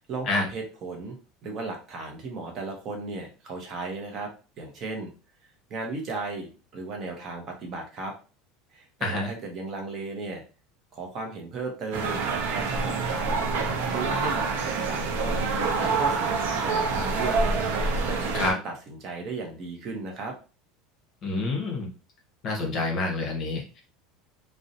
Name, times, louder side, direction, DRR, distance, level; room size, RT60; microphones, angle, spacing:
voice 1, 0.1-1.1 1.4-4.3 4.6-5.1 5.7-8.1 8.7-10.4 10.9-13.4 13.9-17.6 18.0-20.4, right 3 dB, 35° right, 2 dB, 0.6 m, -35 dB
sound 1, 11.9-18.5, right 4 dB, 90° right, 0.5 m, -26 dB
voice 2, 21.2-21.9 22.4-23.8, left 2 dB, 35° left, 0 dB, 0.8 m, -27 dB
2.6 x 2.0 x 2.6 m, 0.34 s
cardioid pair, 160°, 0 cm